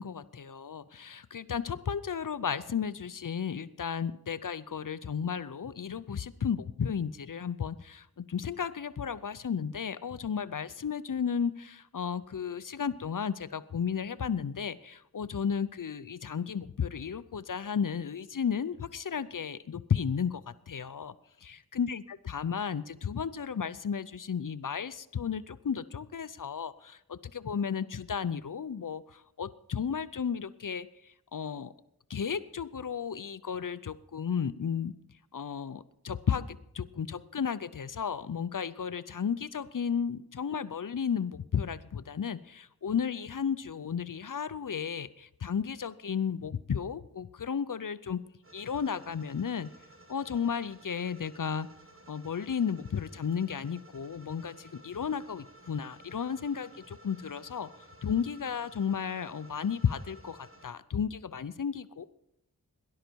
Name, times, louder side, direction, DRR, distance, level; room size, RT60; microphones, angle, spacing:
voice 1, 0.0-21.1 21.4-31.7 32.1-34.9 35.3-48.2 48.5-49.7 50.1-51.7 52.1-62.1, left 7 dB, 60° left, 16 dB, 0.6 m, -33 dB
sound 1, 48.4-60.7, right 1 dB, 35° right, 1.7 m, -55 dB
18.0 x 11.5 x 4.6 m, 0.82 s
wide cardioid pair, 65°, 36 cm